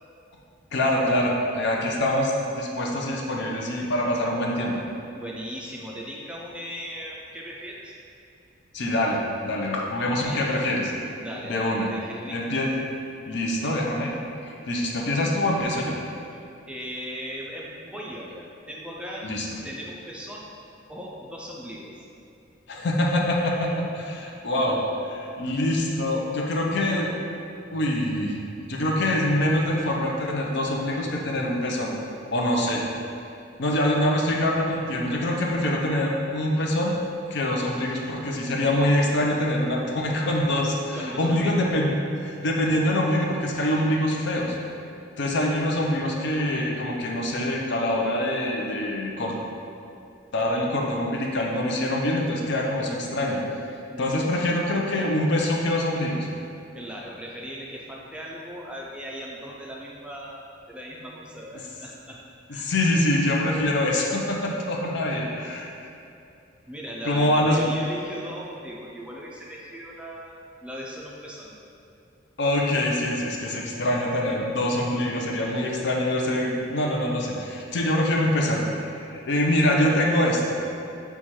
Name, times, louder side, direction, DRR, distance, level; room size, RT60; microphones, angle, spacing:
voice 1, 0.7-4.7 8.7-10.9 11.4-11.9 12.3-12.7 13.3-14.1 14.7-15.9 19.2-19.5 22.7-24.8 25.0-27.1 27.7-28.4 28.7-31.9 32.3-32.8 33.6-36.9 37.3-41.9 42.2-44.6 45.2-49.4 50.3-53.4 54.0-56.3 62.6-65.7 67.0-67.6 72.4-78.9 79.1-80.5, left 1 dB, 60° left, -1 dB, 0.5 m, -24 dB
voice 2, 5.1-8.0 10.2-10.4 11.2-12.4 16.3-19.3 19.6-20.5 20.9-22.1 24.0-24.3 24.7-24.8 37.6-38.0 40.9-41.7 53.9-54.5 56.7-62.2 62.5-62.7 66.7-71.5 75.5-75.6, equal, 5° right, -4 dB, 0.4 m, -38 dB
4.2 x 2.3 x 4.6 m, 2.6 s
head